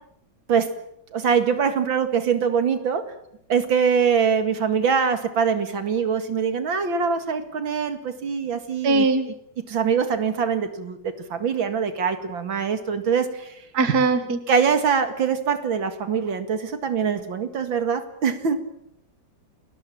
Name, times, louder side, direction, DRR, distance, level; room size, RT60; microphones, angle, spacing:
voice 1, 1.1-3.0 3.5-13.5 14.5-18.6, right 6 dB, 85° right, 9 dB, 2.8 m, -23 dB
voice 2, 8.8-9.3 13.7-14.4, right 3 dB, 55° right, 10 dB, 2.3 m, -20 dB
29.5 x 20.0 x 7.5 m, 0.75 s
omnidirectional pair, 2.1 m